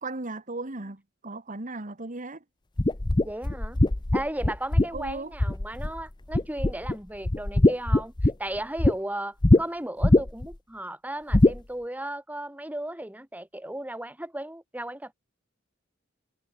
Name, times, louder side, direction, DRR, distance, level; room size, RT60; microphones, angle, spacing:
voice 1, 0.0-2.4 4.9-5.3, right 2 dB, 40° right, 2.0 m, -36 dB
sound 1, 2.8-6.0 6.3-6.9 7.2-8.9 9.4-9.6 10.0-10.5 11.3-11.6, left 1 dB, 20° left, 0.7 m, -21 dB
voice 2, 3.2-3.8 4.1-15.1, right 1 dB, 10° right, 3.5 m, -35 dB
head